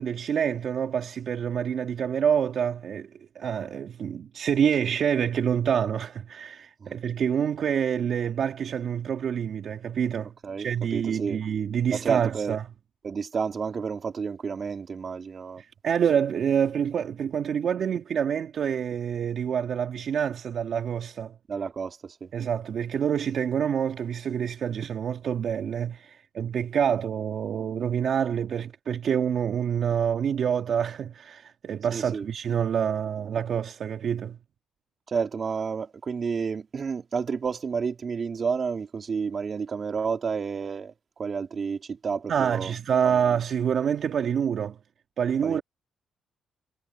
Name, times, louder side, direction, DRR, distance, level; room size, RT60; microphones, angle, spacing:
voice 1, 0.0-3.1 3.3-12.6 15.6-21.4 22.3-34.4 42.3-44.8 45.2-45.6, right 8 dB, 60° right, 2.2 m, -27 dB
voice 2, 10.4-11.4 11.9-12.6 13.0-15.6 21.5-22.3 31.9-32.3 35.1-40.9 41.2-42.7 43.0-43.2 45.4-45.6, right 5 dB, 45° right, 3.4 m, -30 dB
cardioid pair, 90°, 0 cm